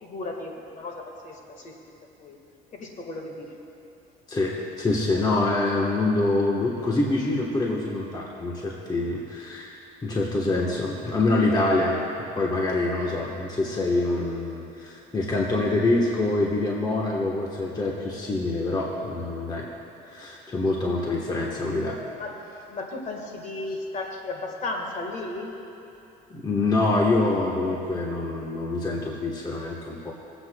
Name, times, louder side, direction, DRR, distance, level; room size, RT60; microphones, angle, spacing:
voice 1, 0.0-1.7 2.2-2.4 2.7-3.5 22.1-22.4 22.7-25.5, left 2 dB, 45° left, 1 dB, 1.6 m, -35 dB
voice 2, 4.3-12.0 12.3-19.7 20.1-22.0 26.3-30.1, left 2 dB, 25° left, -2 dB, 1.2 m, -25 dB
22.5 x 8.0 x 2.3 m, 2.9 s
cardioid pair, 110°, 17 cm